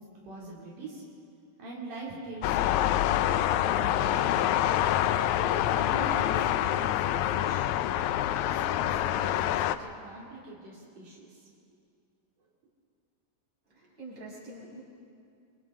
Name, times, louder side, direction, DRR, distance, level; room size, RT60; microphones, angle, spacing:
voice 1, 0.2-1.0 1.6-3.0 3.6-4.7 5.4-7.7 8.5-11.5, right 2 dB, 80° right, -5 dB, 4.4 m, -43 dB
sound 1, 2.4-9.8, left 12 dB, 75° left, 1.9 m, -26 dB
voice 2, 13.7-14.8, right 2 dB, 30° right, -6 dB, 6.6 m, -45 dB
27.5 x 25.5 x 3.7 m, 2.4 s
omnidirectional pair, 3.7 m